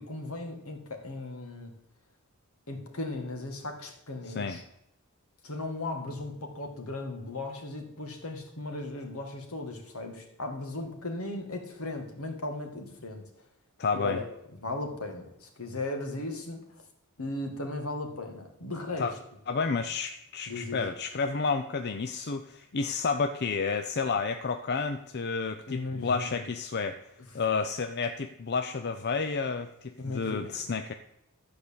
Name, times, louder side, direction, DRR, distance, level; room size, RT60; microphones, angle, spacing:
voice 1, 0.0-1.7 2.7-4.6 5.4-13.2 13.9-14.2 14.5-16.6 17.2-19.1 20.5-20.8 25.7-26.4 30.0-30.5, left 2 dB, 75° left, 4 dB, 2.1 m, -36 dB
voice 2, 4.3-4.6 13.8-14.2 19.0-19.1 19.5-27.0 27.3-30.9, left 4 dB, 50° left, 7 dB, 0.6 m, -30 dB
13.5 x 4.9 x 8.6 m, 0.81 s
head